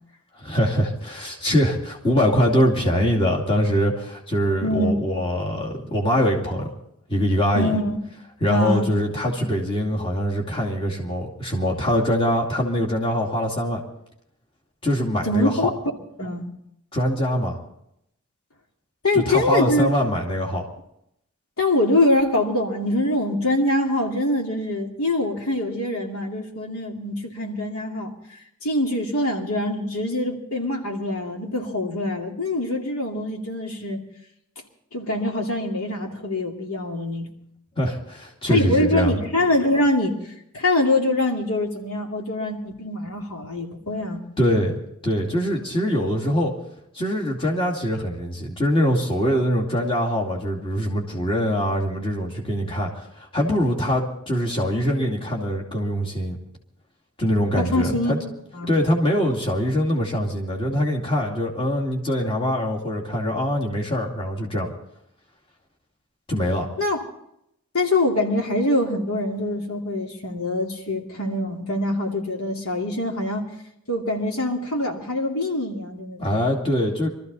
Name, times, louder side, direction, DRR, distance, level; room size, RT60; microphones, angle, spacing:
voice 1, 0.4-6.7 7.1-7.8 8.4-13.8 14.8-15.7 16.9-17.6 19.1-20.6 37.8-39.2 44.4-46.5 46.9-56.4 57.2-58.2 58.7-64.7 66.3-66.7 76.2-77.1, equal, 25° left, -1 dB, 2.5 m, -23 dB
voice 2, 4.6-4.9 7.5-8.0 8.5-8.9 15.2-15.7 16.2-16.5 19.0-19.9 21.6-28.1 28.6-34.0 34.9-37.3 38.5-40.2 40.5-44.2 57.6-58.2 58.5-58.7 66.8-67.0 67.7-73.5 73.9-76.4, left 1 dB, 75° left, 1 dB, 2.6 m, -24 dB
23.5 x 14.0 x 4.1 m, 0.76 s
head